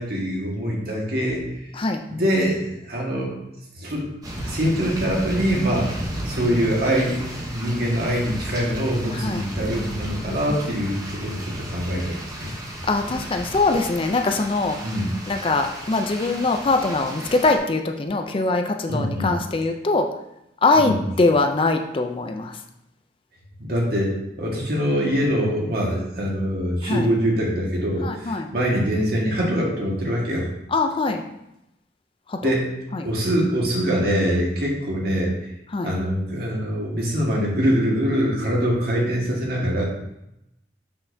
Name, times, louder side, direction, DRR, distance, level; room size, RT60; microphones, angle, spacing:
voice 1, 0.0-1.5 2.1-3.3 3.8-4.1 4.4-6.0 6.2-12.5 14.8-15.1 18.9-19.4 20.7-21.0 23.6-30.5 32.4-32.7 33.0-35.3 35.8-39.8, equal, 55° right, -3 dB, 1.6 m, -24 dB
sound 1, 4.2-17.6, right 1 dB, 20° right, 0.8 m, -33 dB
voice 2, 12.9-14.8 15.3-20.1 20.6-22.5 26.8-27.1 28.0-28.5 30.7-31.2 32.3-32.5 32.9-33.1 35.7-35.9, left 3 dB, 30° left, 5 dB, 0.4 m, -22 dB
6.3 x 5.6 x 2.7 m, 0.84 s
head